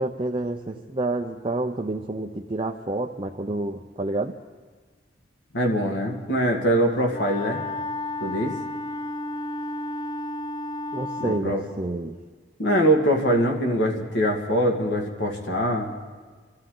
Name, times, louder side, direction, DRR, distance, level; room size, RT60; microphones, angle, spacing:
voice 1, 0.0-4.3 10.9-12.2, right 2 dB, 30° right, 2 dB, 0.6 m, -29 dB
voice 2, 5.5-7.6 8.2-8.5 11.2-11.6 12.6-15.9, equal, 75° left, 1 dB, 1.9 m, -23 dB
Wind instrument woodwind instrument, 7.1-11.5, left 2 dB, 25° left, 0.7 m, -32 dB
27.5 x 13.5 x 3.9 m, 1.5 s
head